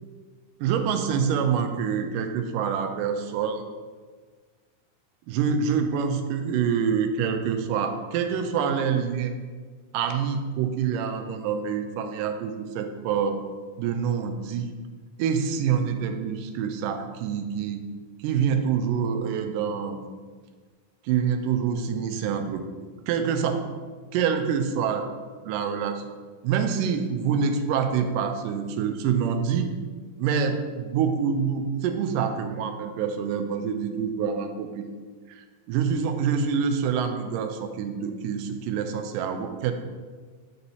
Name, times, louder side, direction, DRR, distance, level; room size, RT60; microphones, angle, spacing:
voice 1, 0.6-3.6 5.3-9.3 9.9-13.4 13.8-14.7 15.2-17.8 18.2-20.0 21.0-22.7 23.1-23.6 24.1-25.1 25.4-26.1 26.4-29.7 30.2-34.9 35.3-39.7, right 7 dB, 90° right, 6 dB, 2.2 m, -26 dB
8.8 x 4.2 x 2.7 m, 1.5 s
omnidirectional pair, 3.7 m